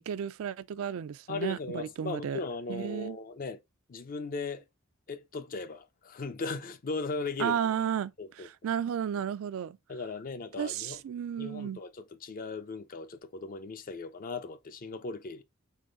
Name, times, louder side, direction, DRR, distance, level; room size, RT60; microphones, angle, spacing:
voice 1, 0.0-2.4 2.7-3.2 7.4-8.1 8.6-9.8 10.6-11.8, right 8 dB, 70° right, 0.3 m, -33 dB
voice 2, 1.3-3.6 3.9-4.6 5.1-7.7 8.2-8.5 9.9-11.0 11.4-15.4, left 3 dB, 40° left, 0.5 m, -37 dB
3.8 x 3.2 x 3.8 m
head